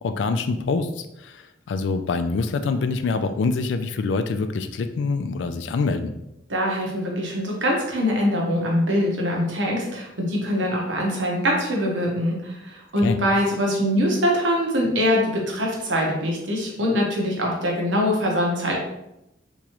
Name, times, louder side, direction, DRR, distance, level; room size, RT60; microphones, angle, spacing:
voice 1, 0.0-6.1 13.0-13.2, left 4 dB, 70° left, 9 dB, 0.3 m, -25 dB
voice 2, 6.5-18.8, equal, 90° right, -1 dB, 1.0 m, -23 dB
3.6 x 3.0 x 2.9 m, 0.86 s
head